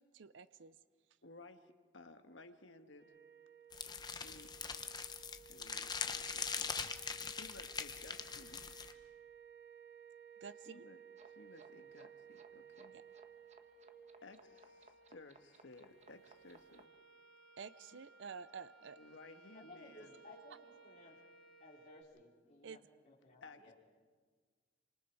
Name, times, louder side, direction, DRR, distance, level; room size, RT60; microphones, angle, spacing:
voice 1, 0.1-0.8 10.4-10.7 12.9-13.0 17.6-19.0 22.6-22.8, right 6 dB, 70° right, 14 dB, 0.6 m, -50 dB
voice 2, 1.2-3.1 4.2-4.5 5.1-5.2 5.5-6.7 7.3-8.6 10.7-13.0 14.2-16.9 17.9-18.0 18.9-20.2 23.4-23.7, left 2 dB, 80° left, 7 dB, 1.5 m, -58 dB
sound 1, 3.0-22.0, right 7 dB, 90° right, 4.1 m, -59 dB
sound 2, 3.7-8.9, left 5 dB, 20° left, 0.8 m, -42 dB
sound 3, 11.2-16.8, right 3 dB, 35° right, 1.1 m, -63 dB
voice 3, 19.5-21.2 21.6-22.8 23.0-23.7, left 2 dB, 40° left, -6 dB, 4.4 m, -58 dB
28.0 x 25.5 x 4.7 m, 1.5 s
head